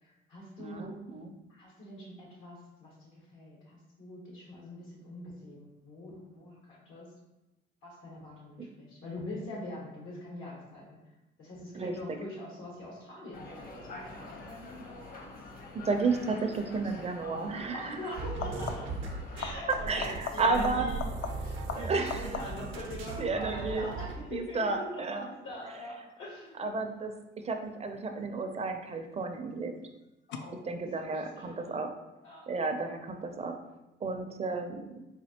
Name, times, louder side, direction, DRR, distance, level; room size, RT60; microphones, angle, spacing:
voice 1, 0.0-0.9 1.5-7.1 7.8-11.0 11.4-15.0 17.7-18.9 19.3-21.0 21.4-26.7 30.3-30.7 31.1-31.2 31.5-31.7 32.2-32.5, left 1 dB, 90° left, -4 dB, 1.4 m, -43 dB
voice 2, 0.6-1.3 8.6-8.7 11.7-12.2 15.7-18.1 19.9-20.9 21.7-22.3 23.2-23.9 24.3-25.3 26.6-29.7 30.6-31.9 32.5-33.6 34.0-34.9, right 3 dB, 30° right, 5 dB, 0.4 m, -32 dB
sound 1, 13.3-19.4, left 2 dB, 50° left, 0.8 m, -46 dB
sound 2, 16.8-17.1 18.3-19.1 19.4-22.8 28.2-28.8 30.3-30.4, left 7 dB, 65° left, 0.4 m, -40 dB
sound 3, 18.2-24.2, right 4 dB, 80° right, 0.6 m, -38 dB
4.2 x 2.7 x 2.8 m, 0.99 s
cardioid pair, 90°, 20 cm